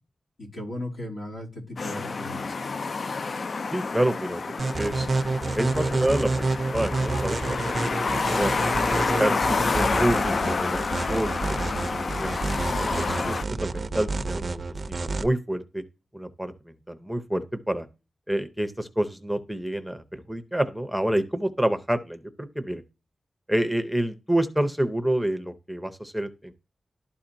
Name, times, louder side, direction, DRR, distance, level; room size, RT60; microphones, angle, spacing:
voice 1, 0.4-2.7, left 1 dB, 85° left, -4 dB, 2.7 m, -36 dB
sound 1, 1.8-13.4, left 4 dB, 50° left, 0.3 m, -28 dB
voice 2, 3.7-5.1 5.5-8.5 8.9-10.8 11.1-12.3 12.8-14.6 14.9-15.8 16.1-17.9 18.3-22.8 23.5-26.5, right 1 dB, ahead, 9 dB, 0.6 m, -28 dB
sound 2, 4.6-15.3, right 3 dB, 45° right, 0.4 m, -29 dB
12.0 x 4.2 x 2.6 m, 0.29 s
wide cardioid pair, 135°, 0 cm